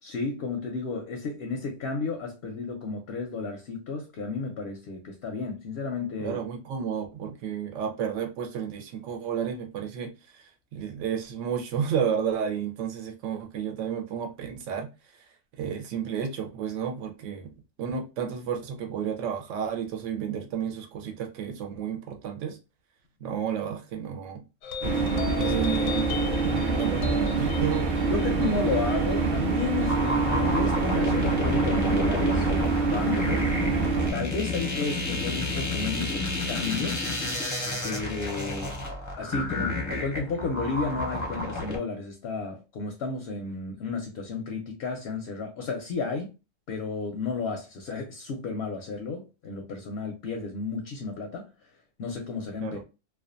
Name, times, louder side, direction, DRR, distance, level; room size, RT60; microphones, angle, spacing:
voice 1, 0.0-6.4 25.4-25.6 27.1-27.2 28.1-33.5 34.1-37.0 37.8-38.8 39.2-46.3 46.7-51.5 52.0-52.8, left 4 dB, 65° left, 0.7 m, -32 dB
voice 2, 6.2-14.9 15.6-17.5 17.8-22.6 23.2-24.4 25.4-26.1 26.7-27.9 52.6-52.8, right 8 dB, 70° right, 0.9 m, -32 dB
sound 1, 24.6-31.5, left 6 dB, 85° left, 1.0 m, -38 dB
sound 2, 24.8-34.1, right 4 dB, 50° right, 0.6 m, -25 dB
sound 3, 29.9-41.8, left 2 dB, 20° left, 0.4 m, -30 dB
2.4 x 2.3 x 2.4 m
omnidirectional pair, 1.4 m